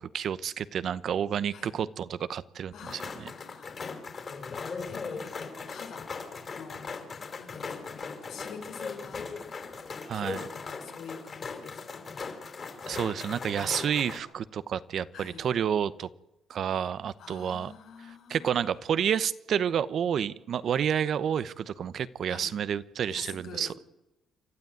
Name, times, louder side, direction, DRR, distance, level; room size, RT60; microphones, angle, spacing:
voice 1, 0.0-3.3 10.1-10.4 12.9-16.1 16.5-17.7 18.0-23.8, right 8 dB, 60° right, 16 dB, 0.8 m, -30 dB
voice 2, 2.7-3.8 4.1-6.1 6.5-6.9 7.4-9.3 10.1-12.0 15.1-15.4 17.2-18.9 22.3-22.6 23.1-23.8, left 6 dB, 80° left, 4 dB, 4.3 m, -47 dB
sound 1, 2.8-14.2, left 5 dB, 45° left, 3.8 m, -39 dB
28.5 x 12.5 x 9.4 m, 0.94 s
cardioid pair, 90°, 0 cm